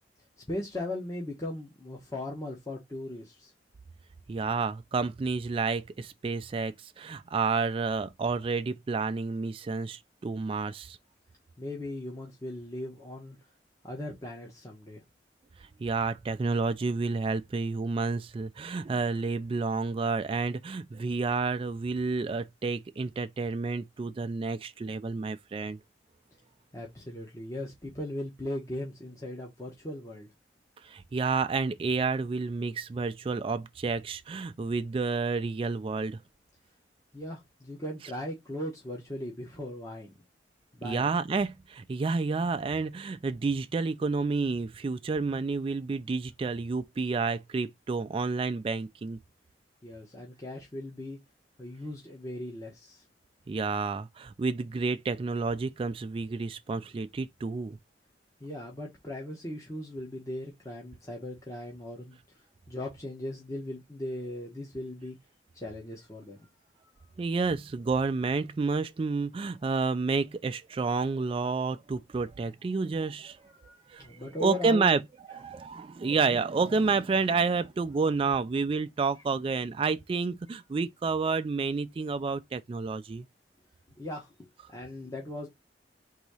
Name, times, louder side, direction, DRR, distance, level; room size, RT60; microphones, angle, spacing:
voice 1, 0.4-3.5 11.6-13.4 13.8-15.0 26.7-30.3 37.1-40.1 40.7-41.1 49.8-51.2 51.6-53.0 58.4-62.2 62.7-65.2 65.5-66.4 73.6-74.9 84.0-84.3 84.7-85.5, left 1 dB, 20° left, 1.0 m, -38 dB
voice 2, 4.3-11.0 15.8-25.8 30.8-36.2 40.8-49.2 53.5-57.8 67.2-73.5 73.9-74.1 74.4-75.0 75.3-83.3, right 4 dB, 30° right, 0.3 m, -30 dB
4.0 x 2.7 x 4.7 m
head